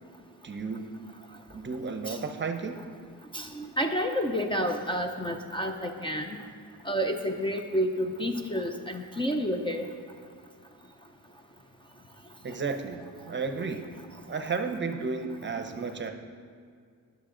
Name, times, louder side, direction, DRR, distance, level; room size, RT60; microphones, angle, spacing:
voice 1, 0.4-0.9 1.5-2.8 12.4-13.8 14.3-16.1, right 4 dB, 35° right, 6 dB, 0.8 m, -33 dB
voice 2, 3.3-6.4 6.9-9.9, equal, 15° left, 4 dB, 0.6 m, -30 dB
20.0 x 6.9 x 3.9 m, 2.1 s
cardioid pair, 125°, 34 cm